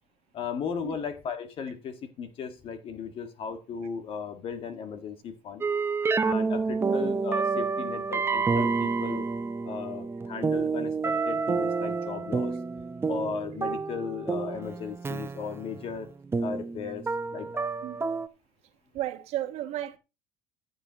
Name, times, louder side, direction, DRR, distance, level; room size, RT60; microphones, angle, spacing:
voice 1, 0.3-5.6 6.2-9.3 9.6-12.6 13.1-16.1 16.4-17.0 17.3-17.7, left 6 dB, 50° left, 1.7 m, -36 dB
sound 1, 5.6-18.3, right 4 dB, 20° right, 0.7 m, -29 dB
voice 2, 18.9-20.0, right 13 dB, 65° right, 1.4 m, -33 dB
14.5 x 7.1 x 2.9 m
supercardioid pair, 90°, 12 cm